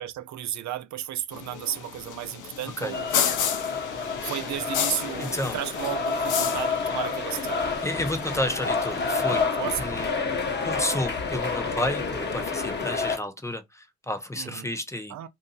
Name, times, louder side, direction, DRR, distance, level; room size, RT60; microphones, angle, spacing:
voice 1, 0.0-3.1 4.2-7.7 9.5-9.9 14.3-14.7 15.1-15.3, right 12 dB, 70° right, 0.5 m, -33 dB
sound 1, 1.3-9.5, left 9 dB, 85° left, 0.8 m, -33 dB
sound 2, 2.9-13.2, left 4 dB, 35° left, 1.1 m, -29 dB
voice 2, 5.2-5.6 7.8-9.5 9.8-10.1 10.6-15.1, left 1 dB, 10° left, 0.8 m, -31 dB
2.7 x 2.6 x 3.9 m
cardioid pair, 90°, 30 cm